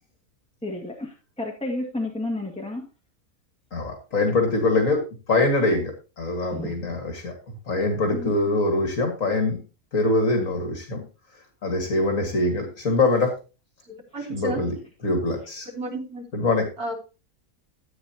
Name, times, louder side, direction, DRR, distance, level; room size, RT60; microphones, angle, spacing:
voice 1, 0.6-2.9 6.5-6.8 8.1-8.3, left 2 dB, 5° left, -1 dB, 1.8 m, -31 dB
voice 2, 3.7-5.0 5.3-5.9 6.2-7.3 7.7-9.6 9.9-11.0 11.6-13.3 14.3-14.7 15.0-15.7 16.3-16.7, left 2 dB, 60° left, 4 dB, 2.2 m, -23 dB
voice 3, 13.8-14.6 15.7-16.3 16.8-17.0, right 1 dB, 80° right, 0 dB, 3.5 m, -32 dB
14.5 x 8.7 x 2.9 m, 0.32 s
omnidirectional pair, 1.5 m